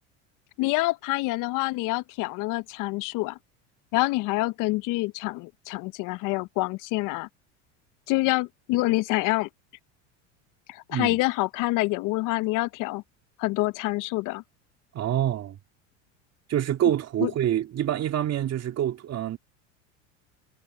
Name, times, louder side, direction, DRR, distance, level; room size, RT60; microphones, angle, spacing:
voice 1, 0.6-3.4 3.9-7.3 8.1-9.5 10.7-13.0 13.4-14.4 17.2-17.3, left 21 dB, 55° left, 0.8 m, -26 dB
voice 2, 14.9-15.6 16.5-19.4, right 11 dB, 40° right, 2.9 m, -26 dB
hypercardioid pair, 95°, 38 cm